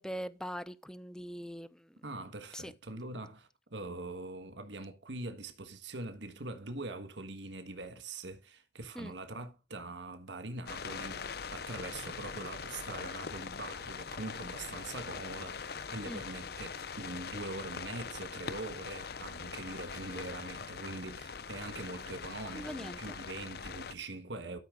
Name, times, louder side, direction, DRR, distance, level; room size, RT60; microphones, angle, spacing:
voice 1, 0.0-2.0 2.5-2.7 8.9-9.1 16.1-16.2 22.5-23.2, equal, 5° left, 0.6 m, -42 dB
voice 2, 2.0-24.6, right 2 dB, 80° right, 1.5 m, -43 dB
sound 1, 10.7-23.9, left 5 dB, 60° left, 0.6 m, -42 dB
12.5 x 5.7 x 3.8 m
head